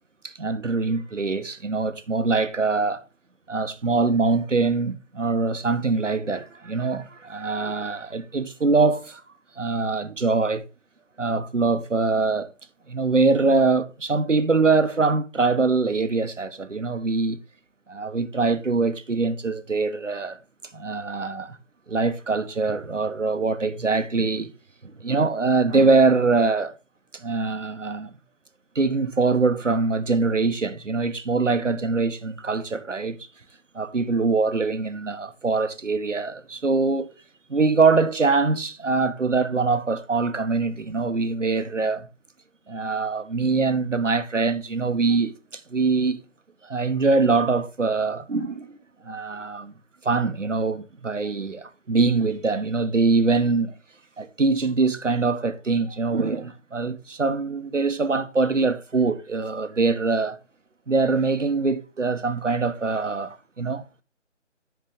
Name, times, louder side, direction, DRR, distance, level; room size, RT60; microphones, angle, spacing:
voice 1, 0.2-3.0 3.5-9.2 9.6-10.6 11.2-12.5 12.9-17.4 17.9-20.4 20.7-21.6 21.9-24.5 24.8-26.7 27.1-28.1 28.7-33.2 33.7-37.1 37.5-42.1 42.7-45.3 45.7-46.2 46.6-48.8 49.0-49.7 50.0-53.7 54.2-60.4 60.9-64.0, right 4 dB, 75° right, 1.0 m, -23 dB
10.5 x 4.6 x 3.7 m
figure-of-eight pair, 160°, 38 cm